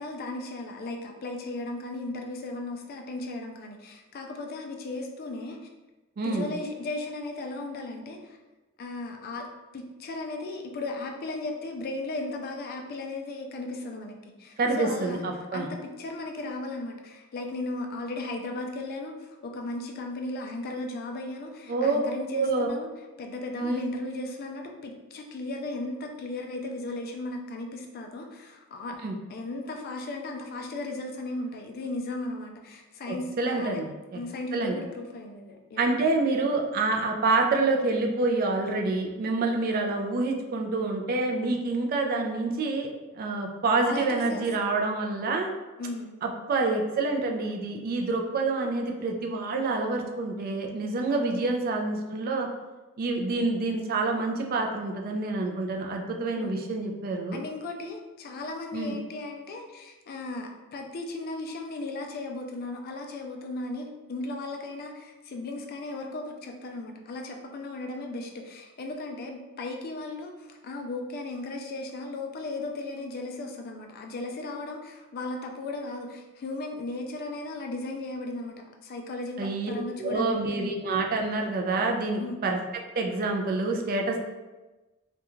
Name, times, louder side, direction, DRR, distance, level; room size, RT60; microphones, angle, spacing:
voice 1, 0.0-5.6 6.2-8.4 8.8-9.5 9.7-15.2 15.5-22.9 23.2-29.0 29.3-33.8 34.1-35.9 39.4-39.7 43.8-44.5 45.8-46.1 51.1-51.3 56.3-56.6 57.3-80.4 82.2-82.4, left 2 dB, 45° left, 3 dB, 0.3 m, -36 dB
voice 2, 6.2-6.5 14.6-15.7 21.7-22.0 22.3-22.7 23.6-23.9 29.0-29.1 33.1-33.9 34.1-34.2 34.5-34.8 35.8-42.9 43.1-45.5 46.2-52.5 53.0-57.4 58.7-58.9 79.4-82.6 83.0-84.2, right 3 dB, 45° right, 2 dB, 0.3 m, -27 dB
2.4 x 2.2 x 3.0 m, 1.1 s
head